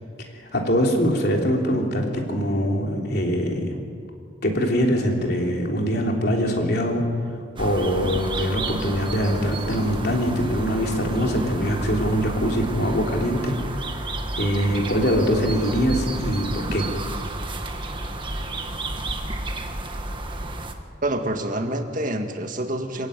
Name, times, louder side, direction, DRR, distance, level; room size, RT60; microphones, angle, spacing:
voice 1, 0.2-3.7 4.4-7.0 7.6-13.5 14.3-16.8, equal, 50° left, 1 dB, 3.4 m, -23 dB
sound 1, 7.6-20.7, right 2 dB, 25° right, 1.5 m, -31 dB
voice 2, 21.0-23.1, right 1 dB, 40° right, 4 dB, 2.0 m, -27 dB
26.5 x 15.5 x 9.3 m, 2.3 s
head